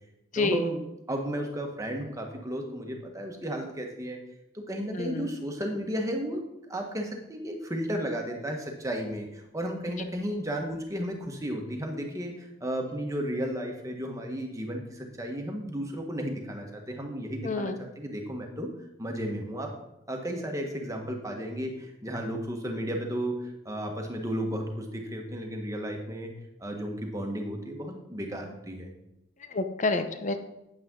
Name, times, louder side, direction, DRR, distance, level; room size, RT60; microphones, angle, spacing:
voice 1, 0.3-0.8 1.1-4.2 4.5-6.4 6.7-18.7 19.0-19.7 20.1-26.3 26.6-28.9, equal, 15° right, 2 dB, 1.4 m, -33 dB
voice 2, 17.4-17.8 29.5-30.4, left 3 dB, 35° left, 9 dB, 0.7 m, -28 dB
9.5 x 8.9 x 3.8 m, 0.88 s
head